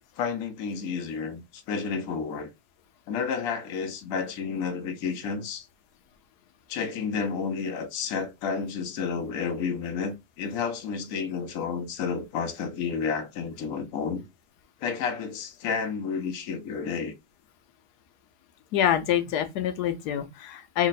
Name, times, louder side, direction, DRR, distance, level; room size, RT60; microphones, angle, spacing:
voice 1, 0.2-2.5 3.1-5.7 6.7-14.2 14.8-17.1, left 5 dB, 65° left, 1.0 m, -31 dB
voice 2, 18.7-20.9, left 10 dB, 90° left, 1.2 m, -26 dB
3.3 x 2.1 x 3.9 m
omnidirectional pair, 1.7 m